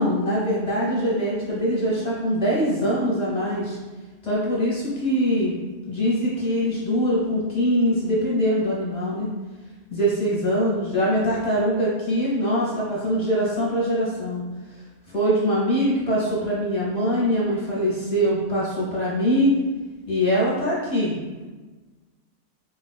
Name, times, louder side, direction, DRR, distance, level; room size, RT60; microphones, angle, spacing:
voice 1, 0.0-3.8 4.2-5.6 5.9-9.3 9.9-14.4 15.1-19.5 20.1-21.4, equal, 40° left, -6 dB, 0.8 m, -23 dB
3.9 x 2.3 x 2.2 m, 1.3 s
omnidirectional pair, 1.3 m